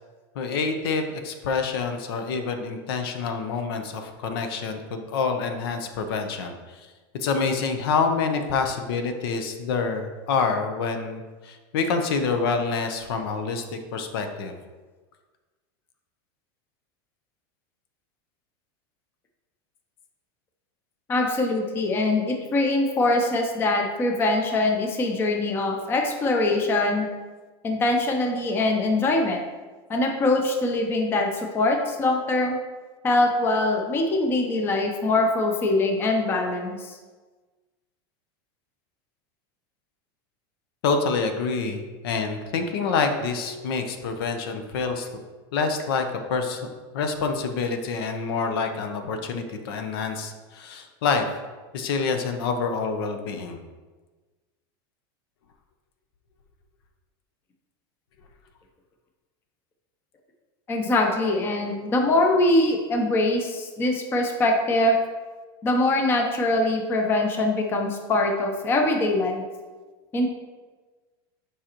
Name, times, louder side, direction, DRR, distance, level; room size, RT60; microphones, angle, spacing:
voice 1, 0.3-6.5 7.2-14.5 40.8-45.1 45.5-46.6 46.9-51.4 51.7-53.6, left 4 dB, 75° left, 6 dB, 0.8 m, -27 dB
voice 2, 21.1-27.1 27.6-29.4 29.9-32.6 33.0-37.0 60.7-65.0 65.6-69.4 70.1-70.3, left 2 dB, 20° left, 3 dB, 0.6 m, -23 dB
7.4 x 4.9 x 2.9 m, 1.3 s
supercardioid pair, 160°, 13 cm